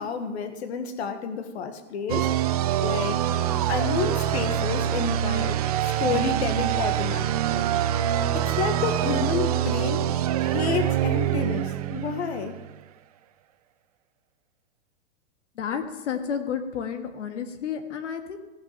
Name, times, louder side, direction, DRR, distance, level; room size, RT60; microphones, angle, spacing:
voice 1, 0.0-2.3 2.8-3.2 3.7-7.7 8.3-10.0 10.4-12.6, left 6 dB, 65° left, 9 dB, 1.4 m, -30 dB
sound 1, 2.1-12.7, right 11 dB, 35° right, 0.4 m, -25 dB
voice 2, 15.6-18.4, left 7 dB, 85° left, 7 dB, 1.6 m, -31 dB
16.0 x 6.3 x 5.7 m, 1.1 s
supercardioid pair, 165°, 35 cm